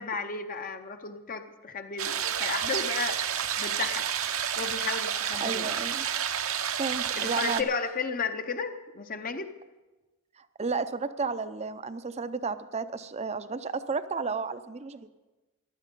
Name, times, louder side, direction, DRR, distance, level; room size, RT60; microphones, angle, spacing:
voice 1, 0.0-3.2 3.6-4.1 4.6-5.7 7.2-9.5, left 4 dB, 40° left, 7 dB, 0.7 m, -33 dB
sound 1, 2.0-7.6, right 8 dB, 70° right, 0.8 m, -30 dB
voice 2, 5.2-6.1 6.8-7.7 10.6-15.1, right 4 dB, 30° right, 12 dB, 0.6 m, -32 dB
15.0 x 11.5 x 5.3 m, 1.2 s
head